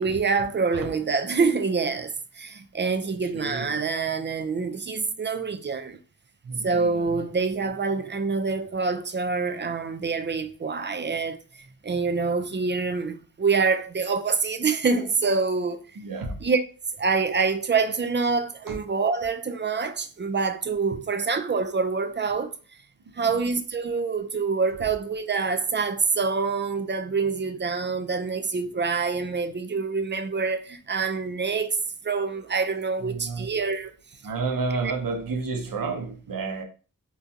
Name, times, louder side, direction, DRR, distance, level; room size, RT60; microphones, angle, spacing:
voice 1, 0.0-6.0 6.6-15.8 16.4-16.6 17.0-22.5 23.1-31.8 32.0-33.9, right 4 dB, 30° right, 0.4 m, -26 dB
voice 2, 3.3-3.8 6.4-7.0 16.0-16.4 18.7-18.8 23.2-23.3 33.0-33.5 34.2-36.6, right 4 dB, 60° right, 0.7 m, -31 dB
3.8 x 2.2 x 2.6 m
cardioid pair, 45°, 37 cm